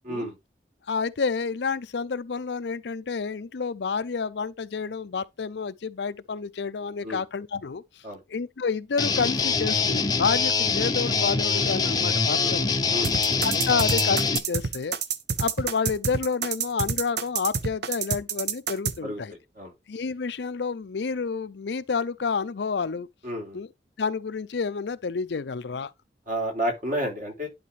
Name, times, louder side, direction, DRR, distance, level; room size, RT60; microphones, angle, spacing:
voice 1, 0.9-7.8 8.3-12.8 13.4-15.0 15.4-19.3 19.9-23.1 23.5-23.7 24.0-25.9, left 5 dB, 70° left, 0.5 m, -29 dB
Guitar, 9.0-14.4, left 4 dB, 20° left, 0.7 m, -24 dB
voice 2, 12.9-13.4 19.0-19.2 19.5-19.7 23.2-23.6 26.3-27.5, equal, 50° right, 3.2 m, -31 dB
sound 1, 13.0-18.9, right 6 dB, 65° right, 0.8 m, -27 dB
11.0 x 4.2 x 3.2 m
head